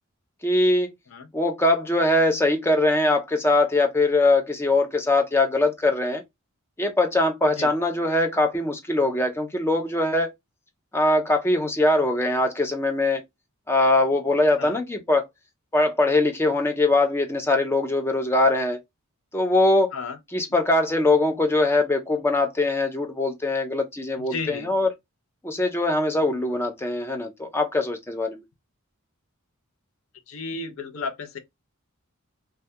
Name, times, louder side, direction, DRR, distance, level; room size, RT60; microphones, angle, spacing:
voice 1, 0.4-0.9 1.3-6.2 6.8-10.3 10.9-13.2 13.7-15.3 15.7-18.8 19.3-19.9 20.3-24.9 25.4-28.4, left 2 dB, 10° left, 0.4 m, -22 dB
voice 2, 24.3-24.7 30.3-31.4, left 4 dB, 65° left, 0.5 m, -32 dB
2.2 x 2.2 x 2.7 m
head